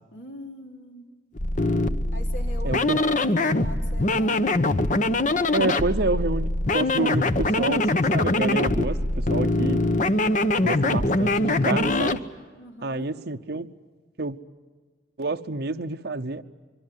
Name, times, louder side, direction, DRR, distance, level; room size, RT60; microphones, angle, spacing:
voice 1, 0.1-1.1 2.1-4.6 12.5-13.1, left 1 dB, 75° left, 2 dB, 3.9 m, -42 dB
sound 1, 1.3-12.2, left 2 dB, 45° left, 1.1 m, -23 dB
voice 2, 2.6-3.0 5.5-9.8 10.6-12.2 12.8-13.7 14.2-14.4 15.2-16.4, right 3 dB, 60° right, 7 dB, 0.8 m, -28 dB
25.0 x 24.5 x 9.4 m, 1.4 s
head